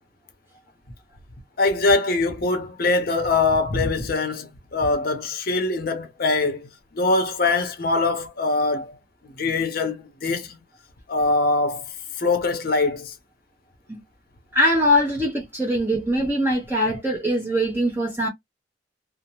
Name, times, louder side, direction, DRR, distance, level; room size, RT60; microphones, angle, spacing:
voice 1, 1.6-6.7 6.9-8.9 9.4-10.5 11.1-11.8 12.2-13.1, left 3 dB, 50° left, 0.7 m, -23 dB
voice 2, 14.5-18.3, equal, 10° right, 0.7 m, -22 dB
2.7 x 2.0 x 3.0 m
head